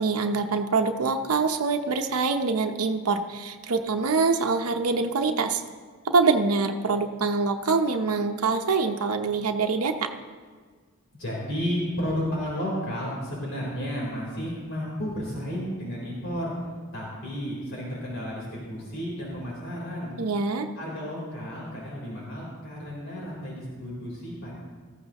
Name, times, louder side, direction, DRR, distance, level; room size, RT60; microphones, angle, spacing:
voice 1, 0.0-5.6 6.0-10.1 20.2-20.7, right 4 dB, 80° right, 5 dB, 0.8 m, -25 dB
voice 2, 11.2-16.5 16.9-20.1 20.8-24.5, equal, 60° left, -5 dB, 3.8 m, -32 dB
18.0 x 14.5 x 3.0 m, 1.5 s
head